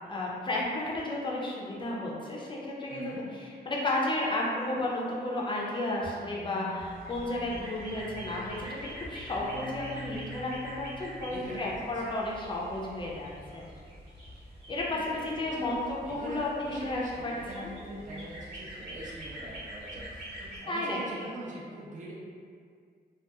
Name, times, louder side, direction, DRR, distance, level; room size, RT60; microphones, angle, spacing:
voice 1, 0.1-3.1 3.7-8.6 8.8-13.6 14.7-17.7 20.7-21.3, left 2 dB, 30° left, -4 dB, 0.4 m, -33 dB
voice 2, 2.9-3.3 11.3-12.2 14.9-15.8 16.0-22.1, right 1 dB, 45° right, -6 dB, 0.5 m, -43 dB
sound 1, 6.0-12.0, left 1 dB, 30° right, 0.8 m, -46 dB
sound 2, 6.8-20.6, right 1 dB, 85° right, 1.1 m, -45 dB
2.6 x 2.2 x 2.3 m, 2.2 s
wide cardioid pair, 170°, 18 cm